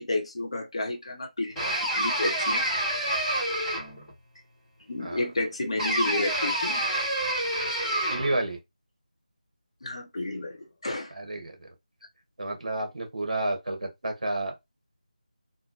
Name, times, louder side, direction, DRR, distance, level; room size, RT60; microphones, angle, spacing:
voice 1, 0.0-1.5 1.8-2.7 4.9-6.8 9.8-11.1, left 2 dB, 45° left, 0.7 m, -31 dB
sound 1, 1.6-4.1 5.8-8.4, right 1 dB, 5° left, 1.2 m, -28 dB
voice 2, 8.1-8.6 11.1-11.7 12.4-14.5, right 2 dB, 55° right, 1.0 m, -30 dB
3.3 x 2.1 x 2.5 m
figure-of-eight pair, 165°, 4 cm